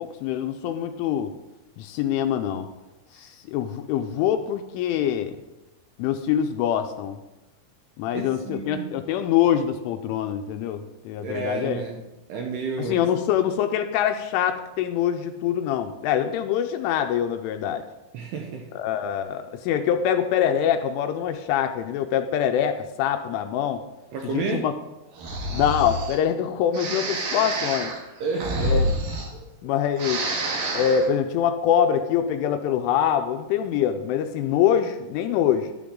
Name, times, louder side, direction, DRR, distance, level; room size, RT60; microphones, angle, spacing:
voice 1, 0.0-1.3 1.8-2.7 3.1-5.4 6.0-7.2 8.0-11.8 12.8-17.8 18.7-23.8 24.3-24.7 25.5-27.9 28.6-28.9 29.6-30.2 30.7-35.7, left 9 dB, 85° left, 7 dB, 3.0 m, -24 dB
voice 2, 8.1-9.0 11.2-12.0 12.3-13.0 18.1-18.7 24.1-24.7 28.2-28.7, right 4 dB, 75° right, 1 dB, 2.6 m, -31 dB
Breathing, 25.2-26.2 26.7-29.7 29.9-31.1, right 1 dB, 55° right, 2.8 m, -28 dB
13.0 x 12.0 x 3.9 m, 1.0 s
omnidirectional pair, 6.0 m